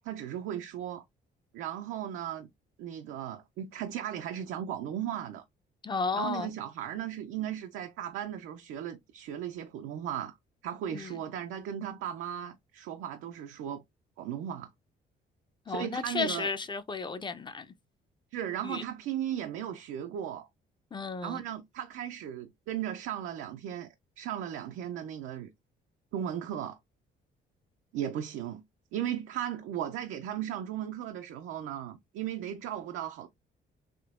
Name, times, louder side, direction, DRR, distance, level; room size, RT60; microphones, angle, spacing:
voice 1, 0.0-1.0 1.5-2.5 2.8-5.4 6.1-10.4 10.6-13.8 14.2-14.7 15.7-16.5 18.3-20.5 21.2-23.9 24.2-25.5 26.1-26.8 27.9-28.6 28.9-33.3, right 10 dB, 90° right, 0.5 m, -36 dB
voice 2, 5.8-6.5 10.9-11.1 15.7-17.7 18.6-18.8 20.9-21.4, left 4 dB, 25° left, 0.4 m, -33 dB
3.5 x 2.7 x 2.4 m
cardioid pair, 90°, 20 cm